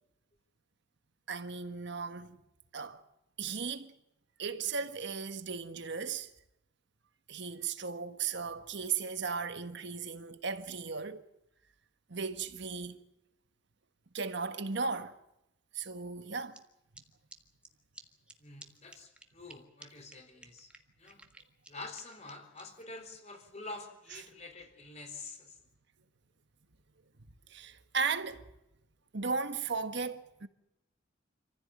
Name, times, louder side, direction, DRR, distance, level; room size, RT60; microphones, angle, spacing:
voice 1, 1.3-2.4 2.7-3.0 3.4-3.9 4.4-6.3 7.3-11.2 12.1-13.0 14.1-15.2 15.7-16.6 27.5-28.5 29.1-30.5, right 5 dB, 60° right, 1.5 m, -36 dB
sound 1, 16.5-16.6 16.9-17.0 17.3-17.4 17.6-17.7 17.9-18.0 18.3-18.4 18.6-18.7 18.9-19.5 19.8-19.9 20.1-20.2 20.4-22.6, right 2 dB, 5° right, 1.7 m, -52 dB
voice 2, 18.4-20.7 21.0-21.2 21.7-25.6, left 3 dB, 35° left, 4.0 m, -47 dB
27.0 x 15.5 x 8.9 m
head